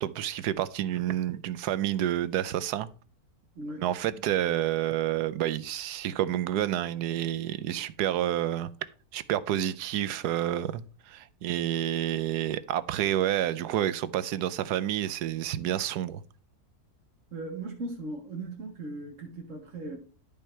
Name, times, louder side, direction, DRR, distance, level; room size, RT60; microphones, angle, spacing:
voice 1, 0.0-2.9 3.8-8.7 9.1-16.2, right 12 dB, 85° right, 1.2 m, -29 dB
voice 2, 17.3-20.0, right 2 dB, 55° right, 1.6 m, -38 dB
11.5 x 5.5 x 4.4 m
omnidirectional pair, 1.7 m